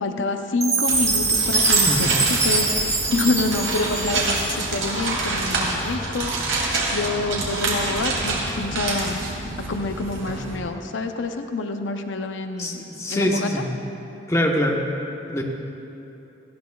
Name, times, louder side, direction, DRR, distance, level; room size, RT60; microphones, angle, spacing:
voice 1, 0.0-6.3 6.9-9.2 9.7-12.8 13.1-13.5, left 3 dB, 80° left, 6 dB, 0.6 m, -27 dB
Chime, 0.6-4.8, right 3 dB, 15° right, 0.8 m, -23 dB
sound 1, 0.9-10.6, right 2 dB, 90° right, 2.8 m, -27 dB
voice 2, 1.9-2.2 5.6-5.8 12.6-13.7 14.3-14.8 15.3-15.4, equal, 15° left, -1 dB, 1.1 m, -24 dB
19.0 x 15.0 x 2.3 m, 3.0 s
head